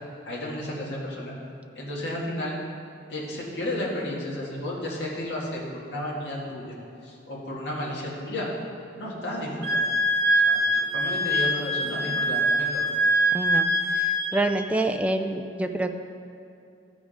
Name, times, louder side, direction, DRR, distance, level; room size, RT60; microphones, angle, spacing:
voice 1, 0.3-1.3 1.8-2.6 3.1-6.8 7.0-8.5 8.9-9.8 10.4-12.9, left 1 dB, 70° left, -4 dB, 2.0 m, -33 dB
Wind instrument woodwind instrument, 9.6-14.4, equal, 60° right, 1.9 m, -23 dB
voice 2, 13.3-15.9, right 2 dB, 5° right, 6 dB, 0.3 m, -27 dB
13.0 x 5.1 x 5.0 m, 2.6 s
head